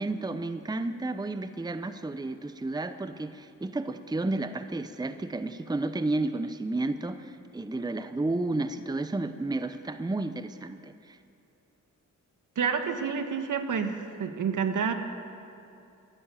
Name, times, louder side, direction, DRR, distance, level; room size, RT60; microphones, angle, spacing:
voice 1, 0.0-11.2, right 2 dB, 10° right, 11 dB, 0.7 m, -32 dB
voice 2, 12.5-14.9, right 6 dB, 70° right, 7 dB, 1.4 m, -29 dB
15.5 x 10.5 x 9.0 m, 2.7 s
cardioid pair, 65°, 32 cm